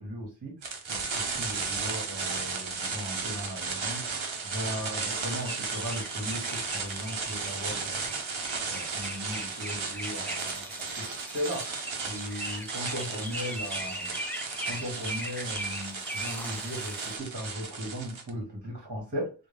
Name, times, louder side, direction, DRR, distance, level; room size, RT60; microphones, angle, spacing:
voice 1, 0.0-4.1 4.4-8.1 8.6-14.2 14.7-19.3, equal, 40° right, -2 dB, 1.7 m, -37 dB
sound 1, 0.6-18.3, right 4 dB, 85° right, 0.8 m, -35 dB
sound 2, 5.0-17.2, equal, 5° left, 0.5 m, -40 dB
3.5 x 2.3 x 3.4 m, 0.32 s
wide cardioid pair, 70°, 46 cm